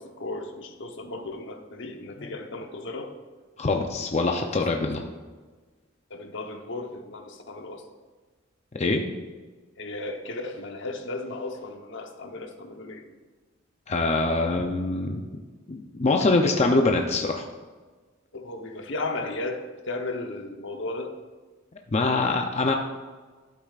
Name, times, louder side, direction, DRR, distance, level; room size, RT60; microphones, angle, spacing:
voice 1, 0.0-3.1 6.1-7.8 9.8-13.0 18.3-21.1, left 2 dB, 65° left, 4 dB, 0.9 m, -35 dB
voice 2, 3.6-5.0 8.8-9.0 13.9-15.2 15.7-17.5 21.9-22.7, left 3 dB, 35° left, 3 dB, 0.5 m, -24 dB
12.0 x 8.4 x 2.4 m, 1.4 s
head